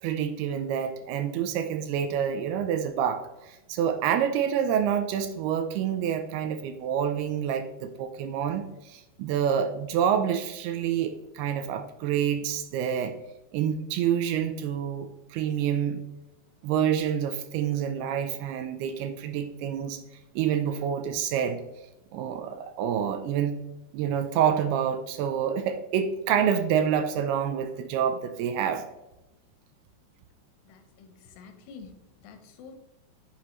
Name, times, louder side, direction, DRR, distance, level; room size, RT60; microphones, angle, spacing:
voice 1, 0.0-13.1 13.5-16.0 16.6-20.0 20.4-21.6 22.1-23.6 23.9-28.8, right 8 dB, 80° right, 8 dB, 2.5 m, -27 dB
voice 2, 30.7-32.8, left 5 dB, 80° left, 7 dB, 3.1 m, -48 dB
9.9 x 6.8 x 3.0 m, 0.92 s
omnidirectional pair, 4.8 m